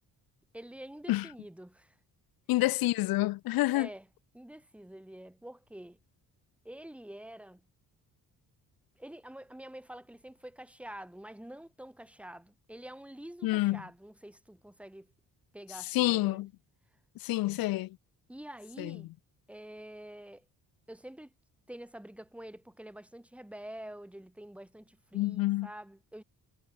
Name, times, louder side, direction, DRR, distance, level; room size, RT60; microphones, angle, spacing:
voice 1, 0.5-2.0 3.7-4.1 4.3-6.0 6.6-7.7 9.0-15.1 15.5-16.5 18.3-19.1 19.5-20.5 20.9-21.3 21.7-26.2, right 1 dB, 5° right, 1.7 m, -47 dB
voice 2, 2.5-3.9 13.4-13.8 15.9-16.5 17.2-18.0 18.8-19.0 25.1-25.7, left 18 dB, 75° left, 0.5 m, -28 dB
cardioid pair, 115°, 36 cm